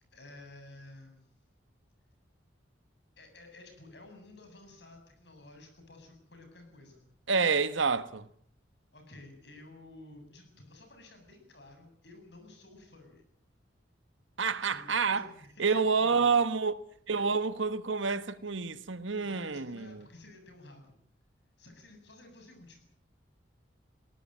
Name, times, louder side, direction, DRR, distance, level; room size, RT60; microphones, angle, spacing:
voice 1, 0.1-1.2 3.2-7.1 8.9-13.2 14.7-16.4 19.2-21.0 21.6-22.8, left 2 dB, 60° left, 7.8 m, -52 dB
voice 2, 7.3-8.3 14.4-15.2 15.6-16.8 17.1-20.0, right 5 dB, 80° right, 1.3 m, -28 dB
22.0 x 17.5 x 9.1 m
head